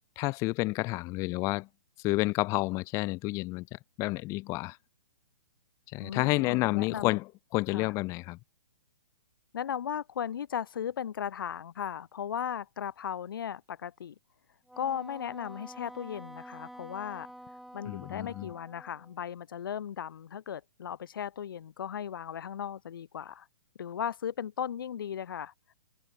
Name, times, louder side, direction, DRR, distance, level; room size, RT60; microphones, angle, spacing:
voice 1, 0.2-1.7 2.0-4.8 5.9-7.2 7.5-8.4 17.9-18.5, left 22 dB, 25° left, 1.6 m, -30 dB
voice 2, 6.0-7.2 7.7-7.9 9.5-14.1 14.8-17.3 17.7-23.5 23.8-25.5, left 9 dB, 70° left, 1.7 m, -36 dB
Wind instrument woodwind instrument, 14.7-19.2, right 1 dB, ahead, 1.2 m, -48 dB
hypercardioid pair, 150°, 12 cm